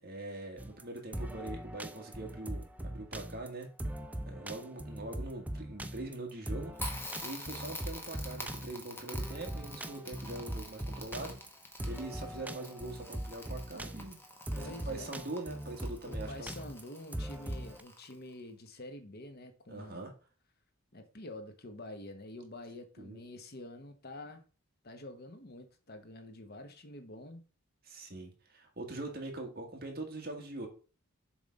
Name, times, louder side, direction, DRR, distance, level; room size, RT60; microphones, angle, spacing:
voice 1, 0.0-3.7 4.2-6.7 7.2-11.3 11.8-14.2 14.5-16.5 19.7-20.1 23.0-23.2 27.8-30.7, right 2 dB, 45° right, 2 dB, 1.8 m, -43 dB
sound 1, 0.6-17.8, right 1 dB, 5° right, 0.4 m, -40 dB
Crackle, 6.8-18.3, left 1 dB, 10° left, 1.1 m, -47 dB
voice 2, 14.5-15.3 16.0-20.1 20.9-24.4 24.8-27.4, left 1 dB, 45° left, 7 dB, 1.0 m, -47 dB
7.1 x 3.5 x 5.2 m, 0.36 s
head